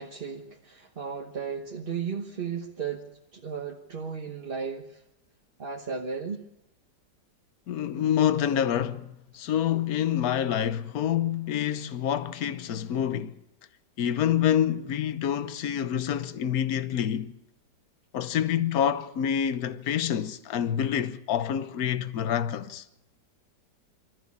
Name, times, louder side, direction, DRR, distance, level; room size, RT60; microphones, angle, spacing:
voice 1, 0.0-5.0 5.6-6.5, right 6 dB, 35° right, 1.3 m, -35 dB
voice 2, 7.7-13.4 14.0-17.3 18.1-22.8, left 9 dB, 60° left, 1.3 m, -27 dB
24.5 x 14.0 x 8.5 m
omnidirectional pair, 1.9 m